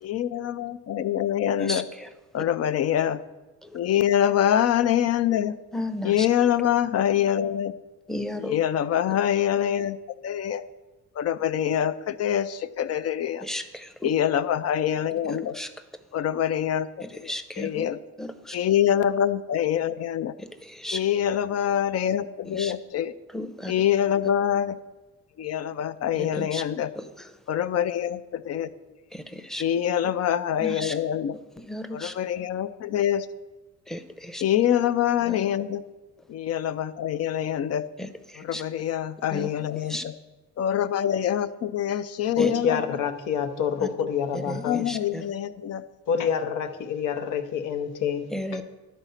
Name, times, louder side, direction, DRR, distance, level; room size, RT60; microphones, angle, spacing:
voice 1, 0.0-1.9 2.3-3.2 3.7-5.6 6.0-7.7 8.4-10.0 10.2-10.6 11.2-13.5 14.0-15.5 16.1-16.9 17.1-18.0 18.5-20.3 20.9-23.1 23.7-24.8 25.4-26.9 27.5-28.7 29.6-31.3 31.9-33.3 34.4-35.8 36.3-37.9 38.4-40.1 40.6-42.8 44.0-44.1 44.3-45.8, left 10 dB, 55° left, 14 dB, 0.5 m, -25 dB
voice 2, 1.6-2.1 3.6-3.7 5.7-6.3 8.1-8.5 13.4-14.1 15.3-15.7 17.0-17.9 18.2-18.6 20.4-21.0 22.5-22.7 23.3-23.7 26.2-26.6 27.0-27.1 29.1-29.6 30.6-31.0 31.7-32.2 33.9-34.4 35.3-35.4 38.0-38.6 39.3-39.5 39.9-40.0 42.4-42.5 43.8-43.9 44.3-45.2 48.3-48.6, left 1 dB, ahead, 9 dB, 0.6 m, -34 dB
voice 3, 42.4-44.8 46.1-48.6, left 7 dB, 85° left, 8 dB, 0.8 m, -27 dB
11.5 x 4.1 x 5.7 m, 1.2 s
cardioid pair, 90°, 30 cm